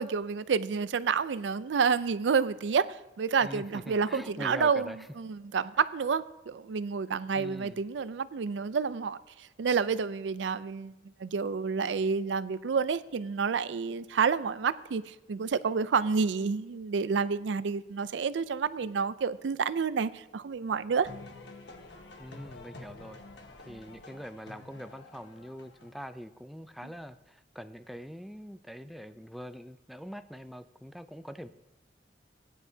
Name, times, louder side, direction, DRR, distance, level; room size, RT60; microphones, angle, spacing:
voice 1, 0.0-2.9 3.2-21.1, right 5 dB, 80° right, 16 dB, 0.4 m, -29 dB
voice 2, 3.4-5.0 7.3-7.8 22.2-23.2 23.7-31.5, equal, ahead, 10 dB, 0.4 m, -43 dB
sound 1, 20.9-26.1, left 2 dB, 70° left, 1.3 m, -49 dB
17.5 x 10.0 x 2.8 m, 1.1 s
head